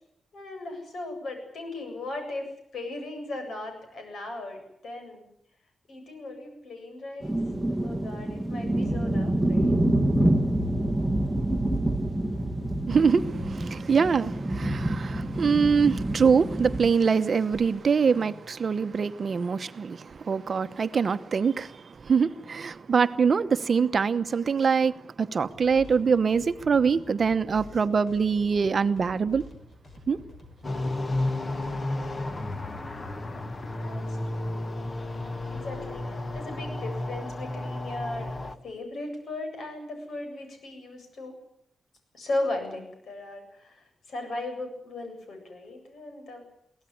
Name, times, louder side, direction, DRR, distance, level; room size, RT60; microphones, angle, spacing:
voice 1, 0.3-5.3 5.9-7.4 7.8-9.8 33.3-33.4 33.7-34.8 35.0-35.2 35.5-38.3 38.6-41.4 42.1-46.4, left 2 dB, 70° left, 7.9 m, -37 dB
sound 1, 7.2-16.9, right 1 dB, ahead, 1.9 m, -27 dB
voice 2, 12.9-29.4 30.1-30.2, right 5 dB, 45° right, 1.0 m, -24 dB
sound 2, 25.5-32.6, left 2 dB, 45° left, 5.6 m, -49 dB
sound 3, 30.6-38.5, left 2 dB, 30° left, 1.5 m, -32 dB
23.5 x 17.0 x 9.8 m
wide cardioid pair, 130°, 0 cm